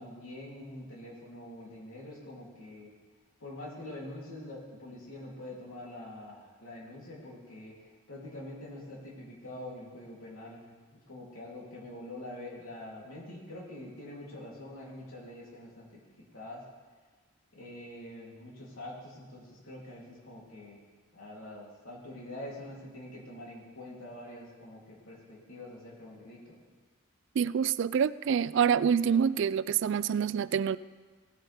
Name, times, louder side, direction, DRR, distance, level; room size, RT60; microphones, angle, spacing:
voice 1, 0.0-2.9 3.4-7.7 8.1-15.9 16.3-16.6 17.5-20.8 21.1-26.6, left 1 dB, 80° left, 3.3 m, -45 dB
voice 2, 27.4-30.8, right 7 dB, 55° right, 0.3 m, -26 dB
17.0 x 9.7 x 3.6 m
head